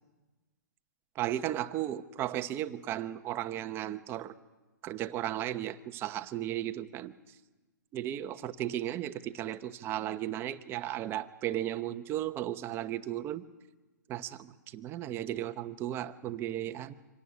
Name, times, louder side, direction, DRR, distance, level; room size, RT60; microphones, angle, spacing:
voice 1, 1.1-4.3 4.8-7.1 7.9-13.4 14.1-16.9, right 12 dB, 25° right, 11 dB, 1.0 m, -35 dB
25.5 x 18.0 x 9.7 m, 1.2 s
hypercardioid pair, 140°, 10 cm